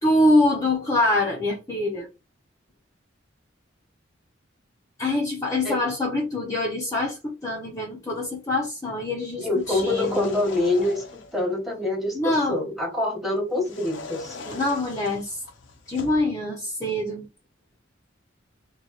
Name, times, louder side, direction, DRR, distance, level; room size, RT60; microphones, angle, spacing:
voice 1, 0.0-2.1 5.0-10.3 12.1-12.6 14.4-15.4 15.9-17.2, left 1 dB, 20° left, 0.7 m, -24 dB
voice 2, 9.4-11.0 11.3-14.3, left 2 dB, ahead, 1.2 m, -25 dB
sound 1, 9.5-11.4 13.6-16.3, left 3 dB, 70° left, 0.6 m, -39 dB
3.1 x 2.3 x 3.9 m
head